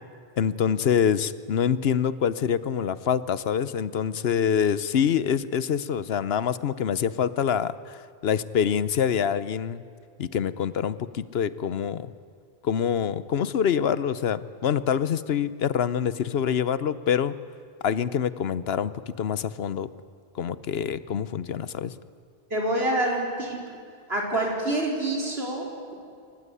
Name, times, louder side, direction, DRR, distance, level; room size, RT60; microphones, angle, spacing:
voice 1, 0.4-9.8 10.2-12.1 12.6-17.4 17.8-19.9 20.3-21.9, left 8 dB, 70° left, 16 dB, 1.0 m, -25 dB
voice 2, 22.5-23.6 24.1-25.9, right 1 dB, 70° right, -1 dB, 4.8 m, -27 dB
28.0 x 15.0 x 9.9 m, 2.4 s
omnidirectional pair, 1.1 m